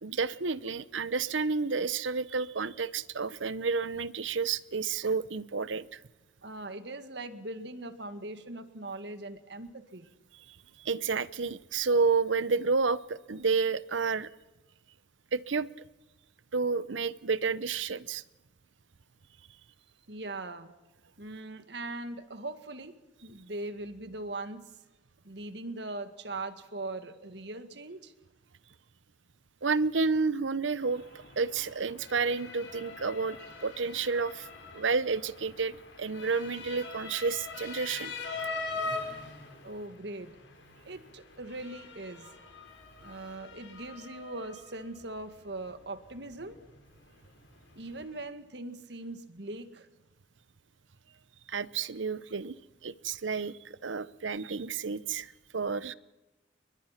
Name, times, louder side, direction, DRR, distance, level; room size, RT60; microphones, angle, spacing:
voice 1, 0.0-6.0 10.5-14.3 15.3-15.7 16.5-18.2 29.6-33.4 33.6-34.5 34.7-38.1 51.5-52.6 52.8-55.9, right 4 dB, 90° right, 17 dB, 0.9 m, -30 dB
voice 2, 6.4-10.1 20.1-20.7 21.2-24.7 25.2-28.1 39.6-40.4 40.8-42.3 43.0-46.6 47.8-49.9, right 2 dB, 65° right, 10 dB, 2.0 m, -40 dB
Motor vehicle (road) / Siren, 30.8-48.2, left 3 dB, 80° left, 5.6 m, -43 dB
30.0 x 22.5 x 5.9 m, 1.1 s
head